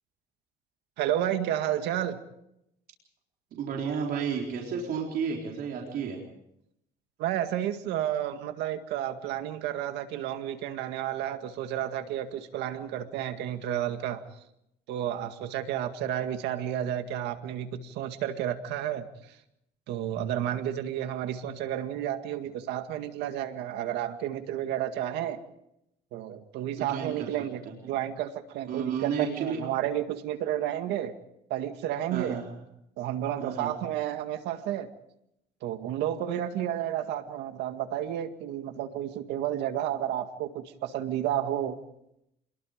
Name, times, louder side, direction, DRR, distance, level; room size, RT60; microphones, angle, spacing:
voice 1, 1.0-2.2 7.2-14.2 14.9-19.1 19.9-25.4 26.1-31.1 31.5-32.4 33.0-34.9 35.6-41.8, right 11 dB, 90° right, 8 dB, 2.0 m, -31 dB
voice 2, 3.5-6.2 26.8-27.4 27.6-27.7 28.7-29.6 32.1-32.6 33.4-33.7, right 6 dB, 65° right, -1 dB, 4.2 m, -32 dB
27.5 x 22.0 x 5.1 m, 0.79 s
cardioid pair, 110°, 17 cm